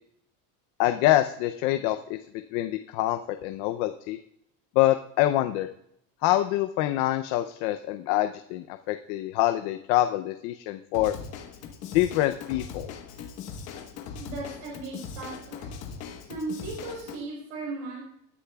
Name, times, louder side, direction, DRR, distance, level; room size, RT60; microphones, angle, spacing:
voice 1, 0.8-2.2 2.5-4.2 4.8-5.7 6.2-11.1 11.9-12.9, left 14 dB, 60° left, 8 dB, 0.6 m, -25 dB
Drum kit / Drum, 10.9-17.2, left 6 dB, 40° left, 1.2 m, -40 dB
voice 2, 14.2-15.7 16.3-18.0, right 3 dB, 90° right, -3 dB, 4.6 m, -36 dB
19.5 x 10.0 x 2.3 m, 0.73 s
cardioid pair, 170°, 38 cm